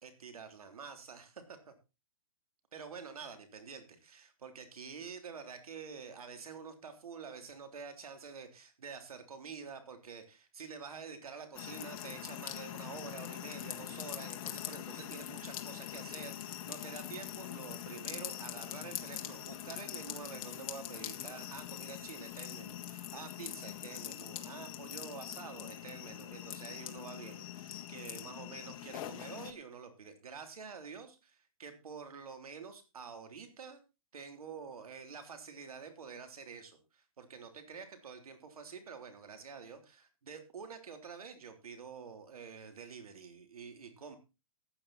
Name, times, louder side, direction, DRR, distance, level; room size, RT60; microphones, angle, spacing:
voice 1, 0.0-1.7 2.7-33.8 34.1-44.2, right 5 dB, 80° right, 7 dB, 3.5 m, -48 dB
sound 1, 11.5-29.5, left 12 dB, 35° left, 1.6 m, -43 dB
14.5 x 8.9 x 4.2 m, 0.28 s
hypercardioid pair, 140°, 18 cm